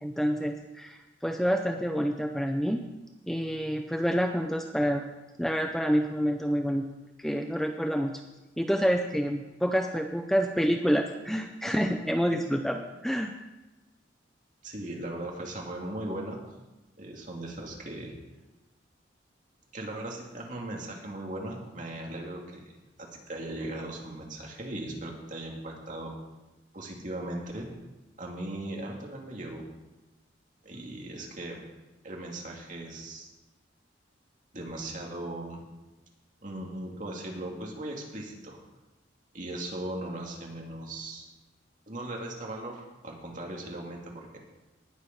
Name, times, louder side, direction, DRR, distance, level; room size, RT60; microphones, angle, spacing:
voice 1, 0.0-2.8 3.3-5.0 5.4-6.8 7.2-8.1 8.6-13.3, equal, ahead, 4 dB, 0.5 m, -28 dB
voice 2, 14.6-16.4 17.0-18.1 19.7-22.6 23.0-26.1 26.7-27.7 28.2-29.6 30.6-31.6 32.0-33.3 34.5-35.6 36.4-38.6 39.3-41.3 41.9-44.4, right 1 dB, 45° right, 0 dB, 2.5 m, -38 dB
19.0 x 6.8 x 5.3 m, 1.1 s
head